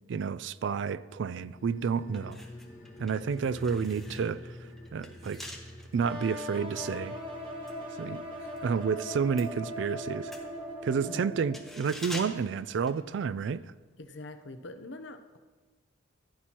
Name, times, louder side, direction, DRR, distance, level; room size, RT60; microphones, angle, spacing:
voice 1, 0.1-2.4 3.0-4.4 4.9-5.4 5.9-7.2 8.0-8.2 8.6-10.3 10.8-13.6, right 6 dB, 60° right, 0.3 m, -30 dB
sound 1, 1.4-12.2 12.5-12.6, left 1 dB, 40° left, 1.2 m, -48 dB
sound 2, 2.1-8.7 9.0-13.6 13.9-14.1, left 1 dB, ahead, 0.9 m, -47 dB
sound 3, 6.0-11.8, equal, 25° right, 1.5 m, -40 dB
voice 2, 11.0-11.4 14.0-15.4, left 2 dB, 60° left, 0.7 m, -44 dB
15.0 x 10.0 x 2.9 m
head